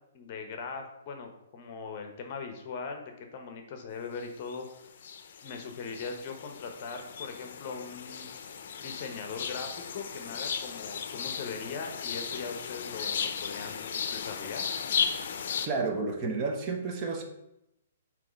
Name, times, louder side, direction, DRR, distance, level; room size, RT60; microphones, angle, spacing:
voice 1, 0.1-4.9 5.4-8.3 8.8-14.7, left 5 dB, 40° left, 5 dB, 1.0 m, -40 dB
sound 1, 4.2-4.7 5.0-15.7, left 7 dB, 60° left, 0.6 m, -36 dB
voice 2, 15.6-17.2, right 4 dB, 30° right, 2 dB, 1.0 m, -31 dB
7.4 x 3.1 x 5.2 m, 0.85 s
hypercardioid pair, 155°, 0 cm